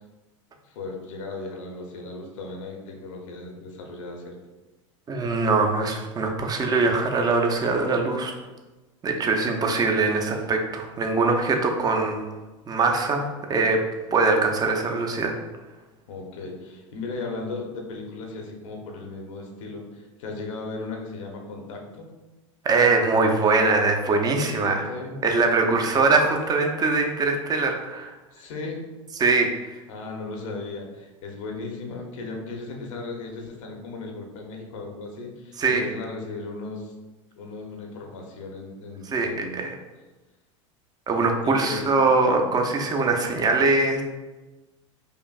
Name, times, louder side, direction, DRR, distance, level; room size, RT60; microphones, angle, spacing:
voice 1, 0.6-4.4 16.1-22.1 24.5-25.2 25.7-25.9 28.3-28.8 29.9-36.9 37.4-39.7 41.4-41.8, left 3 dB, 75° left, 1 dB, 0.8 m, -36 dB
voice 2, 5.1-8.3 9.0-12.2 12.7-13.8 14.1-15.3 22.6-24.8 25.2-28.1 29.2-29.8 35.6-35.8 39.1-39.7 41.1-44.0, right 3 dB, 25° right, 3 dB, 0.6 m, -22 dB
4.9 x 2.5 x 2.4 m, 1.2 s
hypercardioid pair, 95°, 17 cm